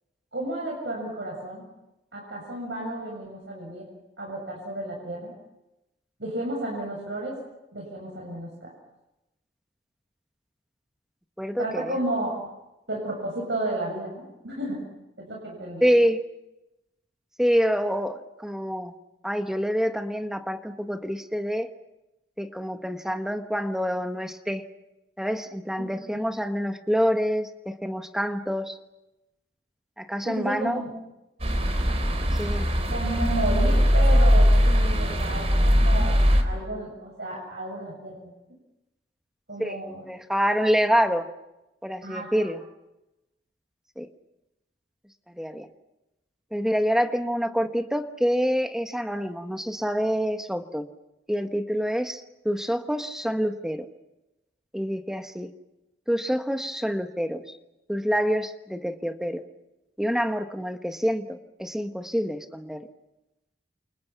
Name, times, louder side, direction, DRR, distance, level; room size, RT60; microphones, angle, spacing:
voice 1, 0.3-1.6 2.1-3.9 4.2-5.3 6.2-7.4 7.7-8.7 11.6-12.5 12.9-14.8 15.2-15.9 26.1-26.2 30.2-30.9 32.9-38.3 39.5-40.0 42.0-42.5, right 1 dB, 75° right, -1 dB, 7.2 m, -32 dB
voice 2, 11.4-12.0 15.8-16.2 17.4-18.9 19.2-21.7 22.4-24.6 25.2-28.8 30.0-30.8 32.4-32.7 39.6-41.3 41.8-42.6 44.0-44.1 45.3-45.7 46.5-50.8 51.3-53.9 54.7-55.5 56.1-57.4 57.9-59.4 60.0-62.9, equal, 5° right, 6 dB, 1.3 m, -26 dB
sound 1, 31.4-36.4, equal, 35° right, 3.8 m, -20 dB
29.0 x 28.5 x 5.9 m, 0.94 s
head